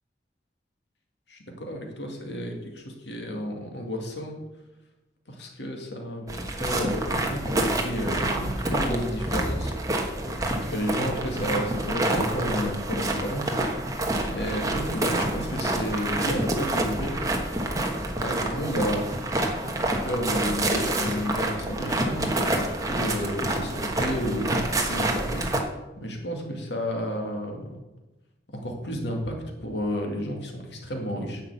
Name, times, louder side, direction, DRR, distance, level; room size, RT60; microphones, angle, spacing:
voice 1, 1.3-4.3 5.3-9.7 10.5-13.4 14.3-17.2 18.2-19.0 19.6-22.3 22.8-25.5 26.0-27.8 28.6-31.4, equal, 80° left, 1 dB, 2.1 m, -31 dB
sound 1, 6.3-25.6, right 1 dB, 20° right, 1.2 m, -27 dB
10.0 x 5.8 x 8.0 m, 1.0 s
head